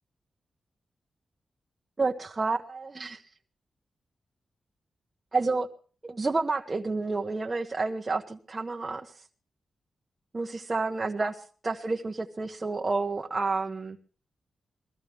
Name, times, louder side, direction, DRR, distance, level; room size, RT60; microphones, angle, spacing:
voice 1, 2.0-3.2 5.3-5.7 6.0-9.1 10.3-11.3 11.6-14.0, right 3 dB, 35° right, 1 dB, 1.2 m, -29 dB
21.5 x 14.5 x 3.5 m, 0.38 s
cardioid pair, 75°, 0 cm